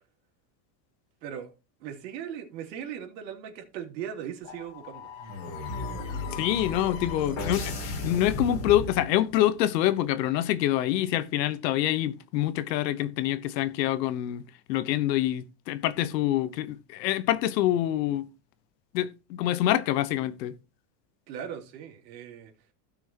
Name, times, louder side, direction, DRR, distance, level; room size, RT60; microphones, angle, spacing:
voice 1, 1.2-1.5 1.8-5.1 7.3-7.4 21.3-22.5, right 9 dB, 85° right, 3.1 m, -38 dB
sound 1, 4.4-9.5, left 2 dB, 45° left, 3.2 m, -35 dB
voice 2, 6.3-14.4 14.7-18.2 18.9-20.5, left 13 dB, 80° left, 1.2 m, -26 dB
16.5 x 6.3 x 3.0 m
supercardioid pair, 175°, 50 cm